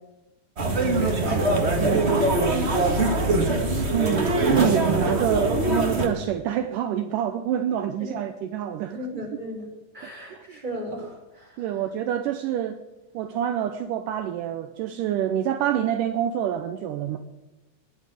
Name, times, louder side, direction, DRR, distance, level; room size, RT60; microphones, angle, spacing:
voice 1, 0.6-3.6 8.0-8.1 8.9-9.6 9.9-11.8, equal, 10° right, -2 dB, 4.7 m, -34 dB
sound 1, 0.6-6.1, right 2 dB, 40° right, 0.9 m, -22 dB
voice 2, 1.8-2.1 3.9-9.1 10.3-10.4 11.6-12.8 13.1-17.2, right 10 dB, 80° right, 9 dB, 2.2 m, -27 dB
20.0 x 7.4 x 7.8 m, 1.0 s
omnidirectional pair, 4.0 m